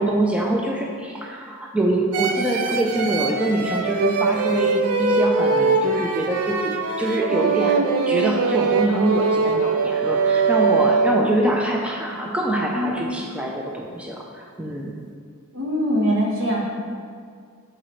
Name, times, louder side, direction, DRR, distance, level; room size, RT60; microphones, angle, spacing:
voice 1, 0.0-14.9, right 1 dB, 5° right, -2 dB, 0.5 m, -24 dB
sound 1, 2.1-11.5, right 4 dB, 85° right, 0.5 m, -22 dB
voice 2, 12.7-13.1 15.5-16.7, equal, 65° right, -3 dB, 1.4 m, -23 dB
11.5 x 3.9 x 3.2 m, 2.1 s
head